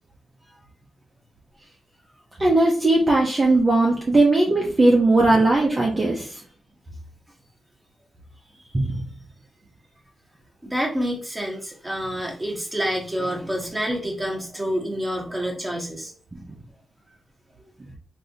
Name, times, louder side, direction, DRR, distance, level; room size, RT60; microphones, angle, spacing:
voice 1, 2.4-6.4 8.7-9.0 16.3-16.4, right 2 dB, 25° right, -2 dB, 0.7 m, -18 dB
voice 2, 10.6-16.1 16.5-16.6, equal, 5° right, -2 dB, 1.1 m, -28 dB
3.5 x 2.7 x 2.7 m, 0.42 s
cardioid pair, 105°, 0 cm